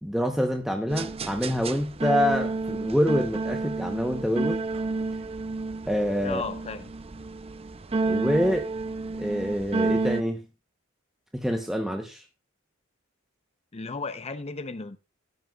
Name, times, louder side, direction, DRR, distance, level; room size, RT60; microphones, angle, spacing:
voice 1, 0.0-4.6 5.9-6.4 8.0-8.7 9.2-10.5 11.3-12.2, equal, ahead, 0.9 m, -26 dB
sound 1, 0.9-10.2, right 3 dB, 30° right, 0.6 m, -30 dB
voice 2, 6.2-6.9 13.7-15.0, left 4 dB, 30° left, 0.7 m, -34 dB
14.0 x 10.5 x 2.3 m
head